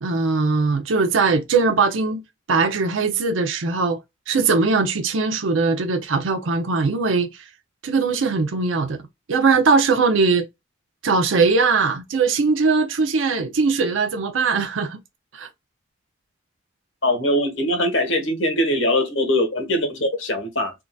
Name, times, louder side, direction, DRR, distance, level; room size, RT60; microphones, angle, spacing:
voice 1, 0.0-2.2 2.5-4.0 4.3-7.3 7.8-9.0 9.3-10.5 11.0-15.0 15.3-15.5, right 4 dB, 85° right, 0.6 m, -20 dB
voice 2, 17.0-20.7, left 1 dB, 80° left, 1.4 m, -22 dB
3.7 x 2.5 x 2.2 m
head